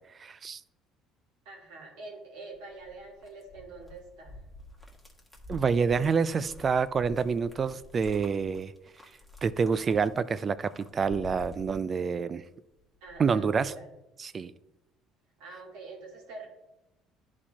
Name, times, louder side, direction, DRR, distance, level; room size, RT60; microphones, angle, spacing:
voice 1, 0.2-0.6 5.5-8.7 9.4-12.4 13.2-13.7 14.2-14.5, right 5 dB, 35° right, 0.4 m, -27 dB
voice 2, 1.4-4.4 13.0-13.9 15.4-16.5, right 3 dB, 85° right, 2.3 m, -45 dB
sound 1, 2.5-12.5 12.8-13.7, left 1 dB, ahead, 1.5 m, -49 dB
11.0 x 4.2 x 2.9 m
supercardioid pair, 85°, 0 cm